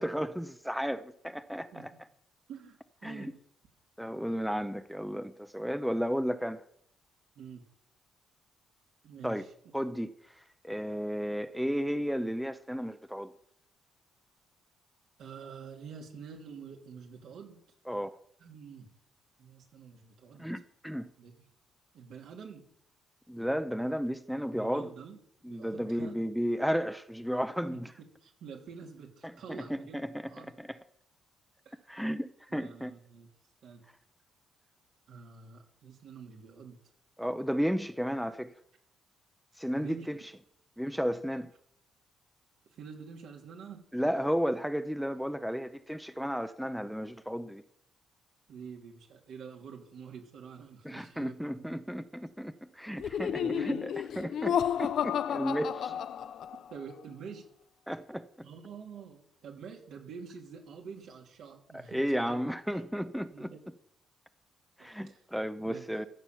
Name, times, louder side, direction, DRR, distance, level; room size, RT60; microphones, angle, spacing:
voice 1, 0.0-1.9 3.0-3.3 4.0-6.6 9.2-9.4 9.7-10.1 10.6-13.3 17.9-18.2 20.4-21.1 23.3-24.9 25.4-27.9 29.2-30.8 31.9-32.9 37.2-38.5 39.6-40.2 40.8-41.5 43.9-47.6 50.8-53.9 54.2-55.9 57.9-58.3 61.7-63.5 64.8-66.1, equal, ahead, 0.7 m, -33 dB
voice 2, 2.5-3.3 7.3-7.6 9.0-9.5 15.2-17.6 18.4-18.9 19.4-20.5 21.2-21.4 21.9-22.7 24.5-25.2 25.5-26.1 27.7-27.8 28.2-30.0 30.2-30.5 31.6-31.9 32.5-33.3 33.6-33.8 35.1-36.8 39.7-40.1 42.7-43.8 48.5-51.6 53.0-53.8 55.9-56.0 56.7-57.4 58.4-62.0 62.3-62.4 62.7-62.8 63.3-63.6 64.8-65.2 65.6-65.9, right 6 dB, 75° right, 3.1 m, -47 dB
Laughter, 53.0-56.7, left 9 dB, 65° left, 0.5 m, -31 dB
14.0 x 7.5 x 6.9 m
cardioid pair, 90°, 0 cm